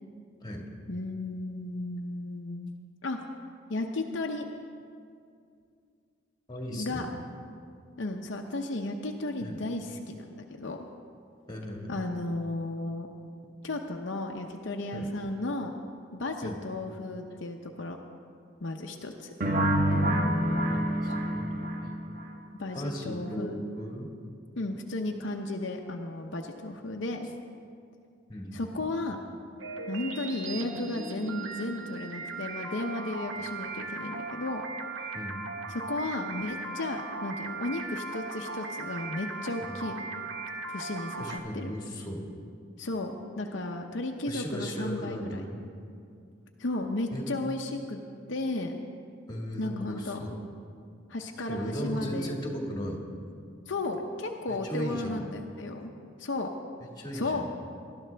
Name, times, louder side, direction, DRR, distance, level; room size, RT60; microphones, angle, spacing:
voice 1, 0.9-2.7 3.0-3.2 3.7-4.5 6.7-7.1 8.0-10.8 11.9-13.1 13.6-15.7 16.1-18.0 18.6-19.3 22.6-23.6 24.6-27.3 28.5-29.2 29.9-34.6 35.0-35.1 35.7-40.1 40.7-41.7 42.8-45.4 46.6-48.0 48.3-48.8 49.6-50.2 51.1-52.4 53.7-55.9 56.2-56.5 57.1-57.5, left 2 dB, 65° left, 2 dB, 0.7 m, -34 dB
voice 2, 6.5-7.1 9.4-9.6 11.5-11.9 14.9-15.1 16.4-16.6 20.7-21.6 22.7-24.1 28.3-28.7 35.1-35.4 39.6-39.8 41.2-42.2 44.3-45.5 47.1-47.3 49.3-50.3 51.5-53.0 54.5-55.2 56.8-57.5, equal, 20° left, 0 dB, 1.7 m, -36 dB
sound 1, 19.4-22.3, equal, 45° right, 1.1 m, -27 dB
sound 2, 29.6-41.4, right 3 dB, 80° right, 1.1 m, -38 dB
19.5 x 12.5 x 3.4 m, 2.4 s
head